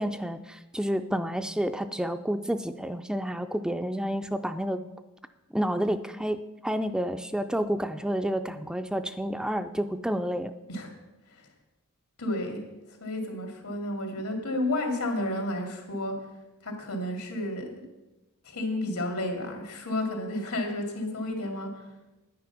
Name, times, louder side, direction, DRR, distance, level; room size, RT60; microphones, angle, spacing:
voice 1, 0.0-4.8 5.5-10.5, equal, 5° right, 8 dB, 0.3 m, -30 dB
voice 2, 12.2-12.6 13.0-16.1 16.6-17.8 18.5-21.7, left 1 dB, 85° left, 3 dB, 2.6 m, -31 dB
9.8 x 9.5 x 5.9 m, 1.0 s
head